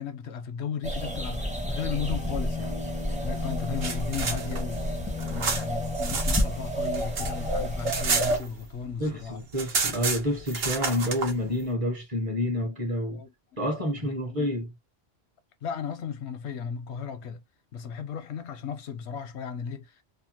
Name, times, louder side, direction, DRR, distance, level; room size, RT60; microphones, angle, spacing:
voice 1, 0.0-2.8 3.2-4.9 5.3-9.4 13.1-13.3 14.0-14.5 15.6-17.4 17.7-20.0, left 7 dB, 85° left, 0.9 m, -35 dB
sound 1, 0.8-8.4, equal, 10° right, 0.5 m, -30 dB
sound 2, 3.5-6.5 6.8-8.9 9.2-9.3 9.5-11.3, right 5 dB, 65° right, 1.0 m, -30 dB
voice 2, 9.0-13.2 13.6-14.7, equal, 35° right, 0.8 m, -28 dB
2.8 x 2.2 x 2.8 m
omnidirectional pair, 1.1 m